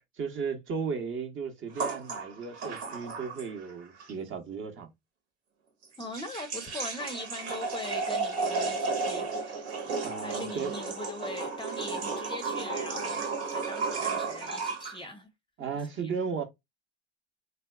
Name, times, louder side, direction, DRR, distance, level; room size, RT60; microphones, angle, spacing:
voice 1, 0.2-4.9 10.0-10.7 15.6-16.4, right 5 dB, 35° right, 0.8 m, -35 dB
sound 1, 1.8-3.7 4.0-4.1 5.8-15.0, right 4 dB, 80° right, 1.2 m, -33 dB
voice 2, 6.0-13.2 13.5-15.3 15.6-15.7 16.0-16.1, left 2 dB, 15° left, 0.5 m, -41 dB
3.3 x 2.7 x 2.3 m
hypercardioid pair, 85°, 34 cm